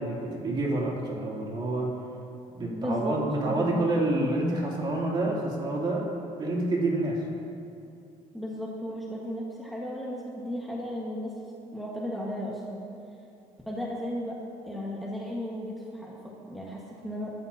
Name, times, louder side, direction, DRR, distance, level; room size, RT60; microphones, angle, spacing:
voice 1, 0.0-2.0 2.5-6.1 6.4-7.2, right 2 dB, 35° right, -3 dB, 3.0 m, -28 dB
voice 2, 2.7-3.2 3.5-3.9 8.3-11.3 11.7-12.8 13.7-14.3 14.7-17.3, equal, ahead, -4 dB, 1.6 m, -35 dB
23.0 x 12.5 x 2.9 m, 2.6 s
cardioid pair, 135°, 14 cm